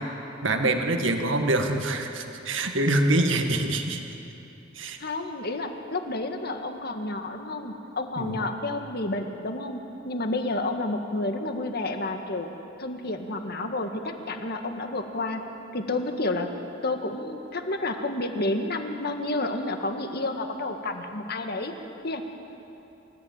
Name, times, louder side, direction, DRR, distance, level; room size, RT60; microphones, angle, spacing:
voice 1, 0.4-4.0 4.7-5.0 8.2-8.4, right 2 dB, 80° right, 4 dB, 1.9 m, -25 dB
voice 2, 5.0-9.8 10.1-12.5 12.8-15.4 15.7-16.5 16.8-21.7 22.0-22.2, left 2 dB, 55° left, 5 dB, 1.8 m, -30 dB
28.0 x 14.5 x 8.9 m, 3.0 s
head